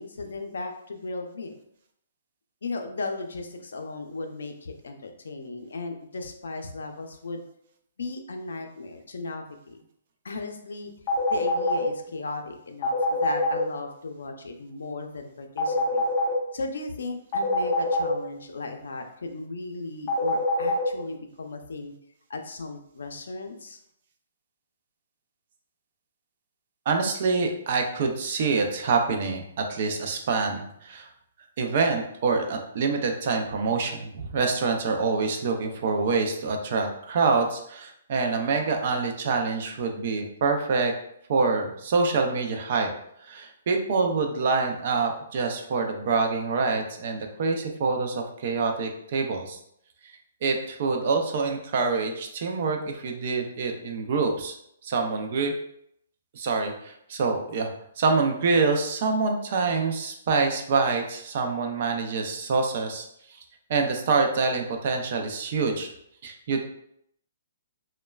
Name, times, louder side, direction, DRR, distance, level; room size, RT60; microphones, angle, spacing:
voice 1, 0.0-1.5 2.6-7.4 8.0-9.8 10.2-10.9 11.3-16.1 16.5-21.9 22.3-23.8, left 3 dB, 85° left, 4 dB, 0.4 m, -36 dB
sound 1, 11.1-11.8 12.8-13.6 15.6-16.3 17.3-18.1 20.1-20.8, left 4 dB, 25° left, 0.5 m, -25 dB
voice 2, 26.9-31.1 31.6-40.9 41.3-42.9 43.2-49.6 50.4-54.6 54.8-55.5 56.3-63.4 63.7-65.9 66.2-66.7, right 4 dB, 40° right, 3 dB, 0.3 m, -26 dB
3.0 x 2.1 x 2.2 m, 0.73 s
hypercardioid pair, 175°, 0 cm